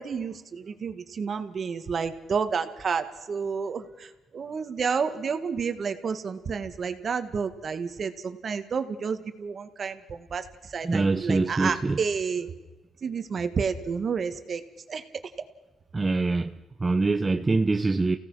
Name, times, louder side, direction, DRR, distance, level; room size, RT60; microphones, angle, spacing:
voice 1, 0.0-12.5 13.0-14.6 14.9-15.0, right 6 dB, 45° right, 2.0 m, -30 dB
voice 2, 10.8-12.0 15.9-16.5 16.8-18.2, right 3 dB, 25° right, 0.9 m, -24 dB
29.5 x 17.5 x 5.8 m
cardioid pair, 90°, 0 cm